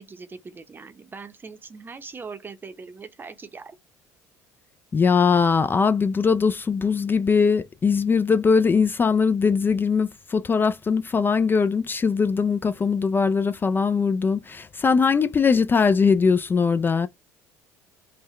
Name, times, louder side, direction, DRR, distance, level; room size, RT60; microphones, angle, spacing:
voice 1, 0.0-3.8, right 4 dB, 25° right, 0.7 m, -41 dB
voice 2, 4.9-17.1, left 5 dB, 25° left, 0.3 m, -21 dB
3.7 x 2.2 x 3.1 m
hypercardioid pair, 75°, 8 cm